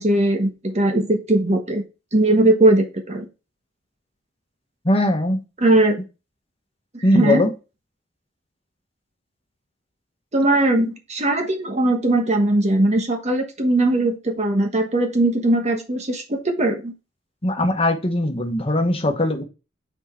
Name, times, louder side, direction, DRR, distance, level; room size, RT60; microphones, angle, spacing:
voice 1, 0.0-1.8 2.1-3.3 5.6-6.0 6.9-7.4 10.3-16.9, right 1 dB, 35° right, 4 dB, 1.2 m, -19 dB
voice 2, 4.8-5.4 7.0-7.5 17.4-19.4, left 1 dB, 30° left, 5 dB, 1.2 m, -20 dB
6.3 x 4.9 x 4.4 m, 0.29 s
head